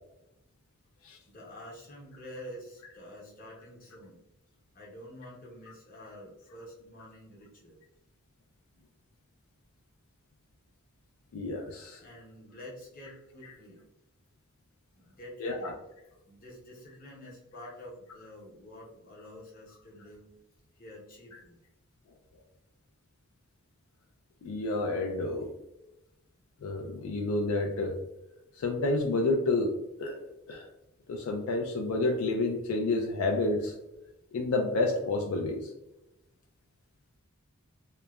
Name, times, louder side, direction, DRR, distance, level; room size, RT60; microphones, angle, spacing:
voice 1, 1.3-4.2 4.7-7.8 12.0-13.8 14.9-15.7 16.3-20.3 20.8-21.6, equal, 40° left, -4 dB, 0.8 m, -48 dB
voice 2, 11.3-12.0 15.4-15.7 24.4-25.5 26.6-28.0 28.6-29.7 30.0-30.7 31.1-33.8 34.3-35.7, left 2 dB, 80° left, 2 dB, 0.4 m, -29 dB
2.9 x 2.1 x 2.2 m, 0.90 s
head